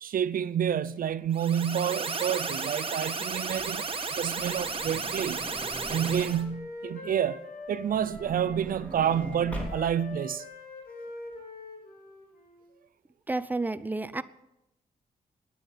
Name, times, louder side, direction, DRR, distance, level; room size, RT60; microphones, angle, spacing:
voice 1, 0.0-5.4 5.9-7.4 7.7-10.4, right 9 dB, 70° right, 0.5 m, -29 dB
sound 1, 1.3-6.4, right 4 dB, 35° right, 1.4 m, -33 dB
Truck / Door, 3.5-6.6 7.7-10.2 10.9-11.0 11.2-11.3, right 1 dB, 10° left, 3.4 m, -43 dB
Wind instrument woodwind instrument, 5.5-8.6 8.9-12.7, left 2 dB, 75° left, 3.1 m, -44 dB
voice 2, 13.3-14.2, right 2 dB, 10° right, 0.6 m, -30 dB
9.9 x 9.4 x 8.0 m
cardioid pair, 75°, 15 cm